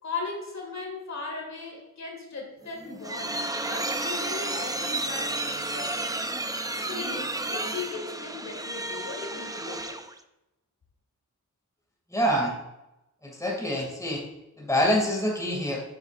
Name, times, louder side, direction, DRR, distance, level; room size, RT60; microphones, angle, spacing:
voice 1, 0.0-6.1 6.7-10.0, left 4 dB, 55° left, 0 dB, 2.0 m, -38 dB
sound 1, 2.7-10.2, right 2 dB, 10° right, 0.5 m, -32 dB
voice 2, 12.1-12.5 13.2-14.2 14.6-15.8, equal, 10° left, -1 dB, 2.4 m, -26 dB
8.6 x 8.1 x 2.5 m, 0.92 s
wide cardioid pair, 85°, 32 cm